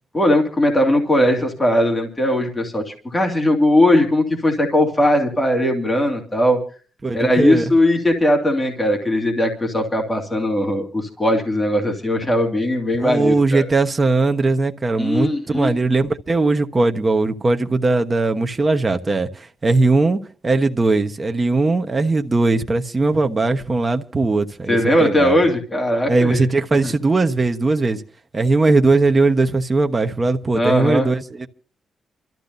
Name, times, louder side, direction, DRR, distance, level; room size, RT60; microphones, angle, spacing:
voice 1, 0.1-6.6 7.1-13.6 15.0-15.7 24.7-26.4 26.8-26.9 30.5-31.1, left 1 dB, 10° left, 2.5 m, -19 dB
voice 2, 7.0-7.6 13.0-25.4 26.1-28.0 28.3-31.5, right 3 dB, 25° right, 1.1 m, -19 dB
28.0 x 13.5 x 2.7 m
cardioid pair, 145°, 0 cm